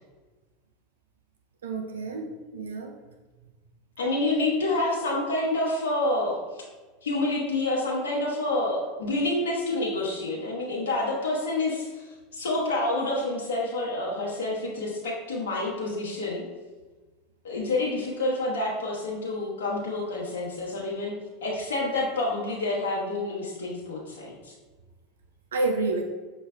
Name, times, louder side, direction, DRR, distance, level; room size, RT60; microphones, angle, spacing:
voice 1, 1.6-2.9 25.5-26.0, right 3 dB, 80° right, 4 dB, 0.4 m, -29 dB
voice 2, 4.0-6.7 7.0-16.4 17.4-21.1 21.4-24.5, left 2 dB, 75° left, -4 dB, 1.0 m, -28 dB
6.1 x 3.2 x 2.2 m, 1.3 s
hypercardioid pair, 80°, 0 cm